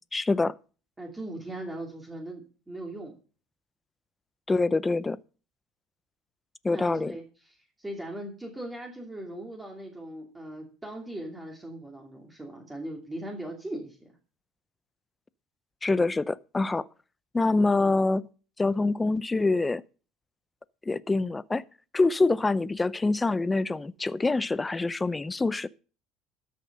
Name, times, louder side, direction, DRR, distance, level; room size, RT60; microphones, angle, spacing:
voice 1, 0.1-0.5 4.5-5.2 6.6-7.1 15.8-16.8 17.3-18.3 18.6-19.8 20.9-21.6 21.9-25.7, left 3 dB, 15° left, 0.5 m, -25 dB
voice 2, 1.0-3.2 6.7-14.2 17.8-18.0, right 1 dB, 15° right, 2.7 m, -39 dB
13.0 x 6.5 x 5.4 m
supercardioid pair, 95°, 0 cm